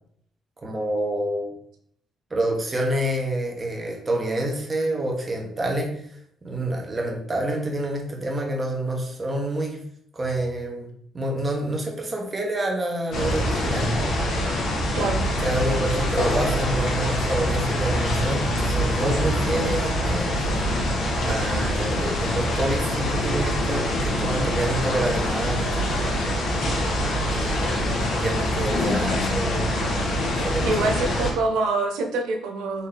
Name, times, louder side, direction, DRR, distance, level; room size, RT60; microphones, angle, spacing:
voice 1, 0.6-1.5 2.3-6.0 6.4-9.8 10.1-13.9 15.4-20.6 21.3-26.4 27.3-29.8 30.4-30.7, right 1 dB, 30° right, 0 dB, 1.3 m, -28 dB
sound 1, 13.1-31.3, left 1 dB, 70° left, 1.3 m, -24 dB
voice 2, 30.7-32.9, right 3 dB, 90° right, 4 dB, 0.7 m, -25 dB
4.2 x 3.1 x 3.8 m, 0.66 s
cardioid pair, 85°, 0 cm